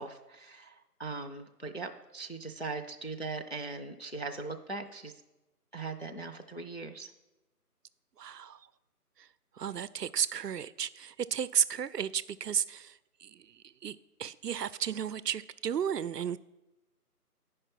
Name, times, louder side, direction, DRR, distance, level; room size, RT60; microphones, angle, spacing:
voice 1, 0.0-5.1 5.7-7.1, right 3 dB, 45° left, 0.4 m, -40 dB
voice 2, 8.2-8.6 9.6-16.4, right 8 dB, 80° right, 0.6 m, -33 dB
9.4 x 5.4 x 5.6 m
figure-of-eight pair, 160°, 47 cm